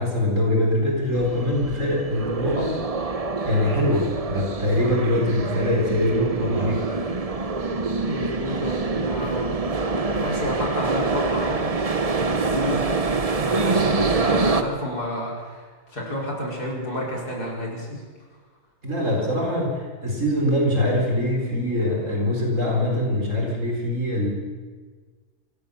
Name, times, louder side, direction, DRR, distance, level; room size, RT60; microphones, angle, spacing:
voice 1, 0.0-6.9 18.8-24.3, left 1 dB, 55° right, -1 dB, 4.7 m, -23 dB
sound 1, 1.1-14.6, right 3 dB, 25° right, 0.9 m, -25 dB
voice 2, 8.0-9.5 10.1-11.9 12.2-12.9 13.4-18.0, left 1 dB, 85° left, -3 dB, 5.7 m, -30 dB
24.0 x 16.0 x 7.1 m, 1.5 s
omnidirectional pair, 1.6 m